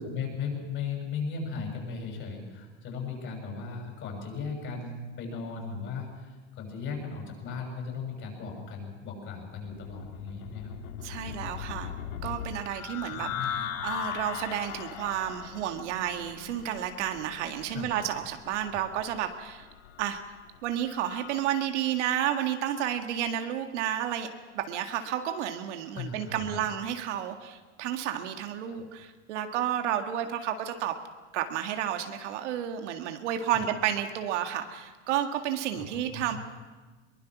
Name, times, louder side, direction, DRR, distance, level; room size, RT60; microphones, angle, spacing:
voice 1, 0.0-10.7 13.2-13.7 17.7-17.9 25.9-26.6 28.7-28.8 33.5-33.6 35.7-36.4, left 5 dB, 35° left, 2 dB, 6.8 m, -37 dB
sound 1, 9.6-21.4, left 9 dB, 80° left, 1.7 m, -39 dB
voice 2, 11.0-11.9 12.2-19.7 20.0-20.2 20.6-24.3 24.5-31.0 31.3-36.4, right 10 dB, 70° right, 6 dB, 1.9 m, -31 dB
22.5 x 20.5 x 6.1 m, 1.3 s
supercardioid pair, 140°, 37 cm